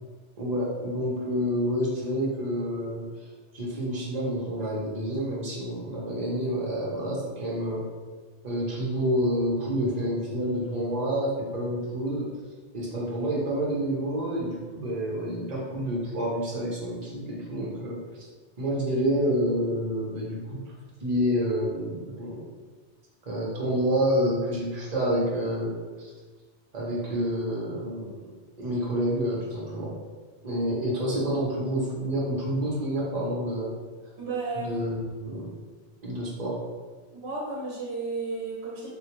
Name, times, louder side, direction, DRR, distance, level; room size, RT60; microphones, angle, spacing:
voice 1, 0.4-3.2 3.5-7.8 8.4-12.3 12.7-18.3 18.6-20.6 21.0-22.3 23.2-25.7 26.0-26.1 26.7-28.1 28.6-29.9 30.4-33.7 34.6-35.5 36.0-36.6, equal, 40° right, -5 dB, 0.9 m, -28 dB
voice 2, 34.2-34.8 37.1-38.9, right 3 dB, 70° right, -4 dB, 1.0 m, -33 dB
3.5 x 2.3 x 3.0 m, 1.4 s
omnidirectional pair, 1.2 m